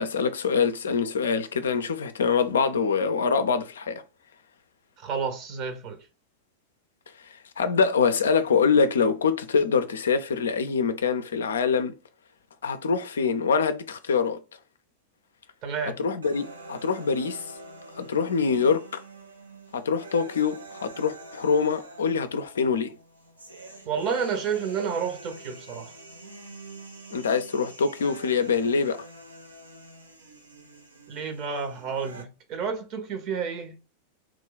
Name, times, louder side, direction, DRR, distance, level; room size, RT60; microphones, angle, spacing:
voice 1, 0.0-4.0 7.6-11.9 12.6-14.4 16.0-17.4 18.0-19.0 19.7-22.9 27.1-29.0, left 5 dB, 65° left, 0.3 m, -24 dB
voice 2, 5.0-6.0 15.6-16.0 23.9-25.9 31.1-33.7, right 6 dB, 40° right, 0.8 m, -30 dB
sound 1, 16.2-32.2, right 2 dB, 80° right, 0.6 m, -46 dB
2.9 x 2.2 x 3.8 m
figure-of-eight pair, 90°, 0 cm